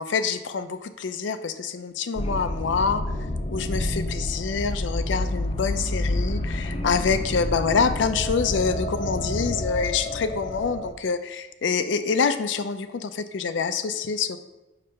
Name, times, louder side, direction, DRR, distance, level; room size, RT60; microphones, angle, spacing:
voice 1, 0.0-3.0 3.5-14.4, left 5 dB, 90° left, 10 dB, 0.5 m, -26 dB
sound 1, 2.2-10.9, left 1 dB, 35° left, 0.5 m, -29 dB
6.8 x 3.3 x 5.5 m, 1.1 s
head